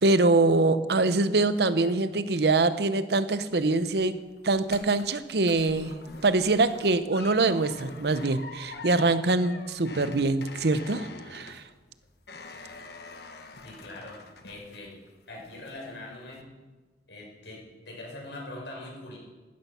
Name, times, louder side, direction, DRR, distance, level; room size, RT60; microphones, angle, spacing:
voice 1, 0.0-11.6, right 3 dB, 65° right, 13 dB, 0.8 m, -24 dB
sound 1, 3.5-15.1 15.4-15.9 16.3-16.4, left 3 dB, 60° left, 1.3 m, -46 dB
voice 2, 13.6-14.9 15.3-16.4 17.1-19.2, left 2 dB, 80° left, -2 dB, 6.1 m, -42 dB
14.5 x 13.0 x 5.8 m, 1.3 s
head